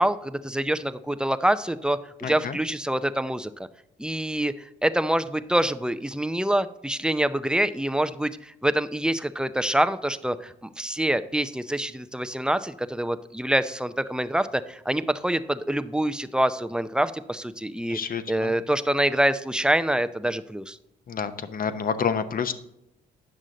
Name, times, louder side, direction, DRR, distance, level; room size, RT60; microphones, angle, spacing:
voice 1, 0.0-3.7 4.0-4.5 4.8-18.0 18.3-20.8, right 1 dB, 5° right, 12 dB, 0.5 m, -26 dB
voice 2, 2.2-2.6 17.9-18.5 21.1-22.5, left 6 dB, 45° left, 11 dB, 0.8 m, -28 dB
9.1 x 6.2 x 3.9 m, 0.82 s
supercardioid pair, 65°, 21 cm